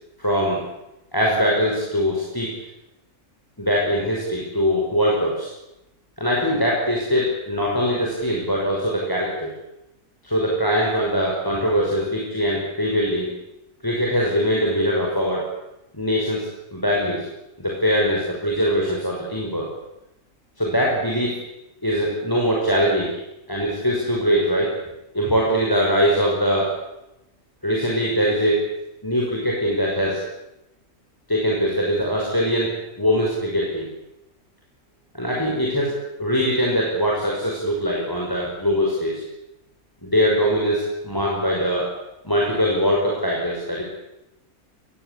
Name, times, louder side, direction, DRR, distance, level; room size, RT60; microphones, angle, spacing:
voice 1, 0.2-0.6 1.1-2.5 3.6-5.5 6.2-9.5 10.2-13.3 13.8-15.4 15.9-17.3 17.6-19.7 20.6-21.3 21.8-23.1 23.5-24.7 25.1-26.7 27.6-28.7 29.0-30.2 31.3-33.9 35.1-39.2 40.0-41.9 42.2-43.8, equal, 15° left, -2 dB, 5.9 m, -22 dB
26.5 x 21.5 x 8.5 m, 0.91 s
omnidirectional pair, 1.5 m